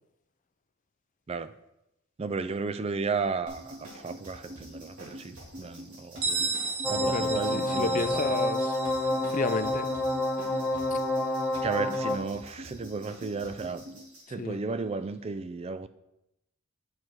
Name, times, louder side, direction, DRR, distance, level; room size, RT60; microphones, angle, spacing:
voice 1, 2.2-3.8 4.0-6.5 6.9-8.2 11.6-13.8 14.3-15.9, right 4 dB, 30° right, 12 dB, 0.3 m, -33 dB
sound 1, 3.5-14.2, equal, 70° right, 2.8 m, -45 dB
Bell, 6.2-11.7, right 4 dB, 90° right, 1.2 m, -35 dB
sound 2, 6.8-12.2, left 1 dB, ahead, 0.8 m, -28 dB
voice 2, 7.1-8.8 9.3-9.9 10.9-11.0 14.3-14.6, left 4 dB, 35° left, 12 dB, 0.4 m, -32 dB
7.5 x 6.1 x 4.6 m, 0.87 s
head